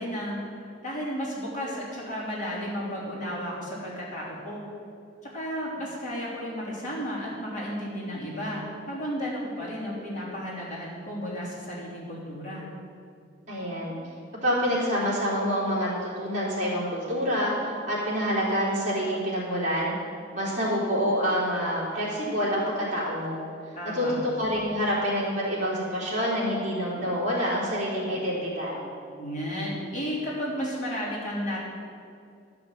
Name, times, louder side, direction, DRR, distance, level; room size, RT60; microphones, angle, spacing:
voice 1, 0.0-4.6 5.3-12.6 23.7-24.1 29.2-31.6, equal, 40° left, -7 dB, 3.2 m, -33 dB
voice 2, 13.5-14.0 14.4-19.9 20.3-22.6 22.9-23.5 23.9-28.8, equal, 40° right, -7 dB, 3.4 m, -27 dB
12.5 x 6.0 x 7.9 m, 2.4 s
head